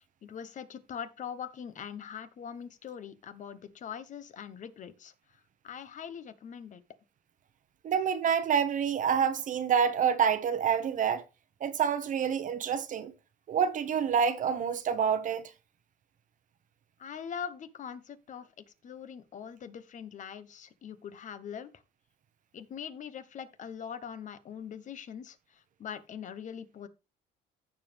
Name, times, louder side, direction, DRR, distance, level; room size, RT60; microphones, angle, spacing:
voice 1, 0.0-5.1 5.6-6.8 17.0-18.5 18.8-21.7 22.5-26.9, left 8 dB, 50° left, 1.0 m, -42 dB
voice 2, 7.8-11.2 11.6-13.1 13.5-15.5, right 7 dB, 50° right, 1.0 m, -27 dB
15.0 x 5.1 x 3.4 m
cardioid pair, 110°, 17 cm